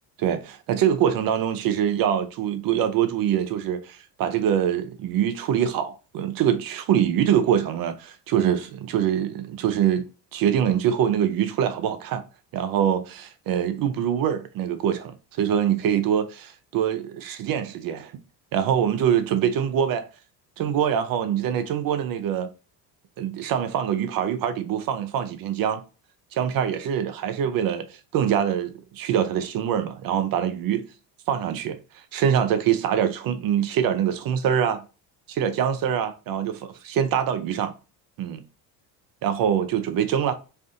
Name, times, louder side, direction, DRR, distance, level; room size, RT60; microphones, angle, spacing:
voice 1, 0.2-10.1 10.3-12.2 12.5-18.1 18.5-20.1 20.6-22.5 23.2-25.8 26.3-30.8 31.3-31.8 32.1-34.8 35.3-37.7 38.2-38.4 39.2-40.3, right 9 dB, 45° right, 0.5 m, -24 dB
2.5 x 2.4 x 2.5 m
supercardioid pair, 80°, 50 cm